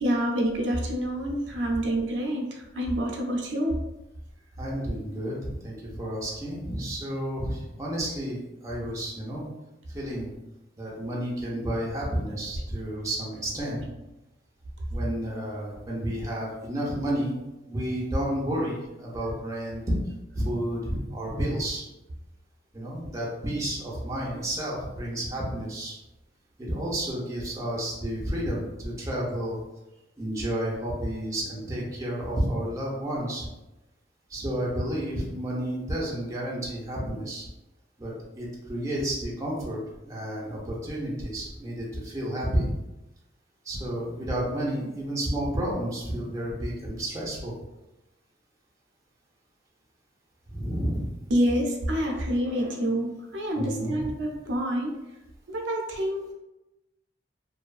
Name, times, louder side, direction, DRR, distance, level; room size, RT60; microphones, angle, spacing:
voice 1, 0.0-3.8 51.3-54.9 55.5-56.3, equal, 85° right, 1 dB, 0.5 m, -27 dB
voice 2, 4.6-9.5 9.9-10.3 10.8-13.8 14.9-17.3 17.7-20.0 20.3-21.9 22.7-26.0 26.7-29.6 30.2-33.5 34.3-37.5 38.0-42.7 43.6-47.5 50.5-51.1 53.6-54.1, right 1 dB, 15° right, -4 dB, 0.6 m, -31 dB
2.6 x 2.3 x 2.3 m, 0.98 s
head